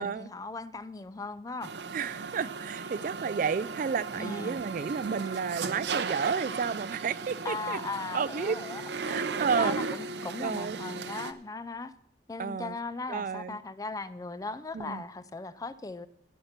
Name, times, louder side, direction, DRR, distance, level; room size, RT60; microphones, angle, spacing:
voice 1, 0.0-1.7 4.2-4.6 7.4-8.8 9.1-9.2 9.6-11.9 12.3-16.1, left 3 dB, 20° left, 0.4 m, -38 dB
sound 1, 1.6-11.3, right 4 dB, 75° right, 0.7 m, -36 dB
voice 2, 1.9-7.8 8.1-8.6 9.0-9.7 10.4-10.8 12.4-12.8 13.1-13.6 14.7-15.0, right 6 dB, 50° right, 0.3 m, -31 dB
17.5 x 5.8 x 5.9 m
head